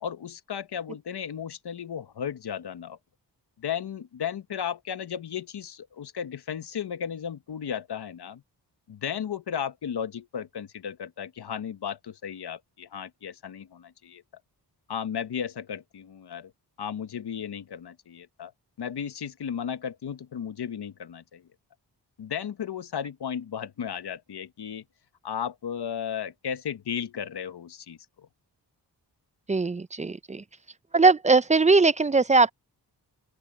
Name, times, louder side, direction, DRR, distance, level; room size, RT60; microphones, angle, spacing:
voice 1, 0.0-3.0 3.6-8.4 8.9-14.2 14.9-16.5 16.8-18.5 18.8-21.5 22.2-24.8 25.2-28.3, left 8 dB, 70° left, 1.1 m, -34 dB
voice 2, 29.5-30.4 30.9-32.5, right 3 dB, 20° right, 0.4 m, -20 dB
open air
wide cardioid pair, 85°, 42 cm